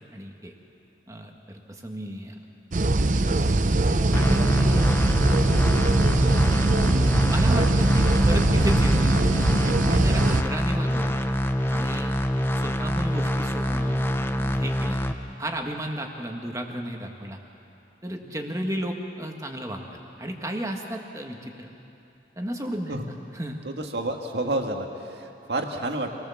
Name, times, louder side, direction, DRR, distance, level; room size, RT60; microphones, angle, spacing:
voice 1, 0.1-0.5 1.1-2.4 3.3-3.4 4.1-5.1 7.3-9.1 9.6-11.1 11.7-12.1 12.5-14.0 14.4-15.0 15.4-17.4 18.0-19.8 20.2-21.7 22.4-23.0 23.3-23.6, right 1 dB, 15° right, 2 dB, 1.6 m, -33 dB
sound 1, 2.7-10.4, right 2 dB, 45° right, 0.7 m, -21 dB
sound 2, 4.1-15.1, equal, 10° left, 0.7 m, -25 dB
voice 2, 23.6-26.1, right 2 dB, 70° right, 3 dB, 1.9 m, -29 dB
26.5 x 18.5 x 7.2 m, 2.8 s
head